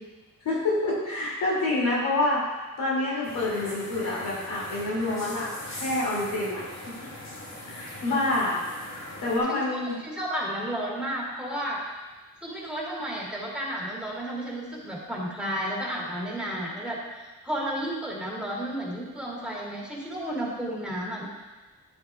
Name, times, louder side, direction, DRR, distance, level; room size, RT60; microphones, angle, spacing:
voice 1, 0.4-2.5 2.8-5.5 5.8-7.1 7.7-8.6 9.2-10.0, left 2 dB, 90° left, -6 dB, 2.7 m, -27 dB
sound 1, 3.2-9.4, left 1 dB, 50° left, 2.5 m, -40 dB
voice 2, 9.5-11.8 12.4-17.0 17.4-21.3, right 1 dB, 5° right, -4 dB, 2.7 m, -32 dB
10.0 x 7.9 x 2.4 m, 1.2 s
cardioid pair, 60°, 33 cm